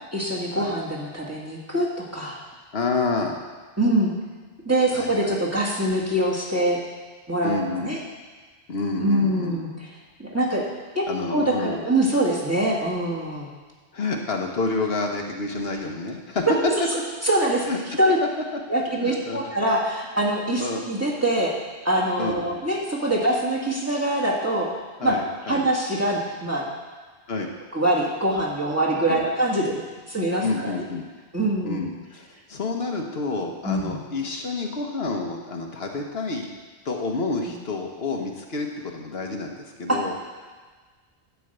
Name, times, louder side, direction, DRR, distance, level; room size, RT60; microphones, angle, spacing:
voice 1, 0.1-2.4 3.8-4.1 4.6-6.8 7.3-8.0 9.0-9.9 10.2-10.6 10.9-11.0 11.3-13.5 17.2-17.7 18.0-18.2 18.7-21.5 21.8-24.7 25.0-25.1 25.5-26.6 27.7-29.8 30.1-30.8 31.3-31.9 33.6-34.0 39.9-40.0, right 1 dB, 15° right, -5 dB, 1.8 m, -24 dB
voice 2, 2.7-3.5 4.9-5.4 7.4-8.0 8.7-9.6 11.1-11.9 13.9-16.4 17.7-17.8 19.0-19.4 20.6-20.8 22.2-22.5 25.0-25.7 27.3-27.5 29.1-29.2 30.4-31.1 31.6-36.5 36.8-40.1, left 3 dB, 65° left, 2 dB, 1.2 m, -29 dB
11.0 x 4.7 x 7.9 m, 1.4 s
omnidirectional pair, 1.1 m